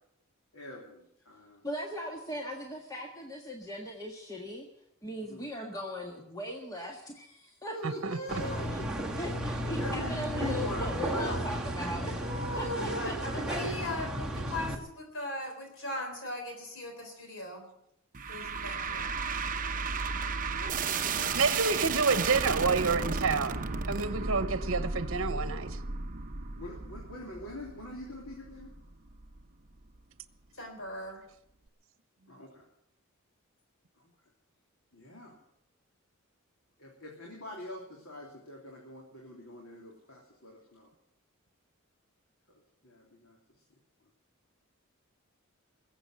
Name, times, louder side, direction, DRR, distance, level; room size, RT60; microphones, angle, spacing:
voice 1, 0.5-1.6 5.3-5.4 7.6-9.1 9.8-11.4 12.2-13.7 20.5-21.5 22.2-22.3 26.6-28.7 32.3-32.6 34.9-35.4 36.8-40.9 42.8-43.4, left 1 dB, 80° left, 3.3 m, -42 dB
voice 2, 1.6-4.7 5.0-7.8 8.4-8.8 9.2-12.3 12.6-13.1, equal, 15° left, 1.6 m, -39 dB
voice 3, 7.8-8.4 21.3-25.8, right 4 dB, 65° right, 1.0 m, -29 dB
sound 1, 8.3-14.7, right 1 dB, 5° right, 2.0 m, -34 dB
voice 4, 12.9-17.7 18.3-19.1 30.5-31.3, left 1 dB, 65° left, 3.8 m, -39 dB
sound 2, 18.1-29.4, right 4 dB, 40° right, 0.8 m, -34 dB
21.0 x 8.1 x 7.8 m
head